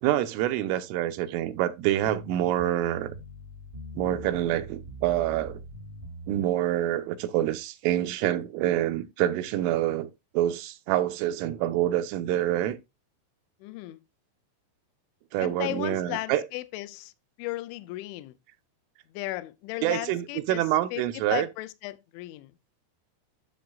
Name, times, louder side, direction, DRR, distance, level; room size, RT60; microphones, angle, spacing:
voice 1, 0.0-3.1 4.0-5.6 6.3-10.1 10.3-12.8 15.3-16.4 19.8-21.5, right 13 dB, 85° right, 3.3 m, -26 dB
sound 1, 2.0-6.6, right 1 dB, 55° right, 0.5 m, -42 dB
voice 2, 13.6-14.0 15.4-17.1 17.4-18.4 19.1-20.7 20.9-21.0 21.3-22.6, left 18 dB, 80° left, 2.9 m, -35 dB
12.5 x 6.4 x 2.4 m
omnidirectional pair, 5.6 m